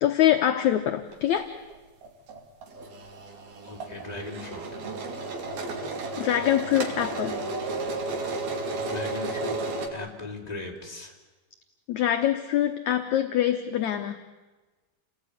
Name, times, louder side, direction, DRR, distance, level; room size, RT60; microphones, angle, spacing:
voice 1, 0.0-1.5 6.2-7.4 11.9-14.2, left 11 dB, 65° left, 7 dB, 2.0 m, -24 dB
sound 1, 1.1-1.4 1.7-1.8 2.0-9.9, right 3 dB, 70° right, 4.7 m, -33 dB
voice 2, 3.6-4.8 8.8-9.6 9.9-11.1, left 3 dB, 10° left, 1 dB, 3.7 m, -38 dB
29.5 x 19.0 x 9.9 m, 1.2 s
omnidirectional pair, 4.4 m